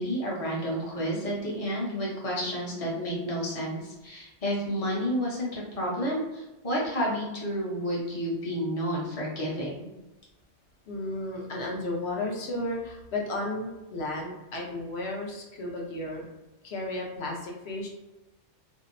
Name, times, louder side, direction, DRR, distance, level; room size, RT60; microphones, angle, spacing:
voice 1, 0.0-9.9, equal, 35° left, -5 dB, 0.8 m, -30 dB
voice 2, 10.9-16.2 16.6-17.9, left 2 dB, 65° left, 0 dB, 0.9 m, -33 dB
2.7 x 2.0 x 2.5 m, 1.0 s
omnidirectional pair, 1.2 m